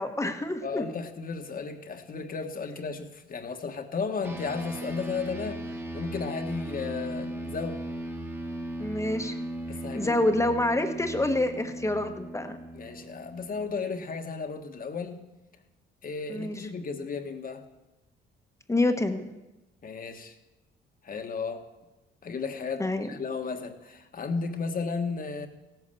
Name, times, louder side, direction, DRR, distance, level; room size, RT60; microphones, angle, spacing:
voice 1, 0.0-0.9 8.8-9.4 9.9-12.6 16.3-16.6 18.7-19.3 22.8-23.1, left 1 dB, 15° left, 1.2 m, -27 dB
voice 2, 0.6-5.7 5.9-7.8 9.7-10.2 12.7-15.2 16.0-17.6 19.8-20.4 21.0-21.6 22.2-25.5, left 5 dB, 45° left, 1.5 m, -34 dB
sound 1, 4.2-14.0, right 1 dB, 10° right, 1.5 m, -37 dB
16.0 x 9.2 x 6.9 m
cardioid pair, 90°, 20 cm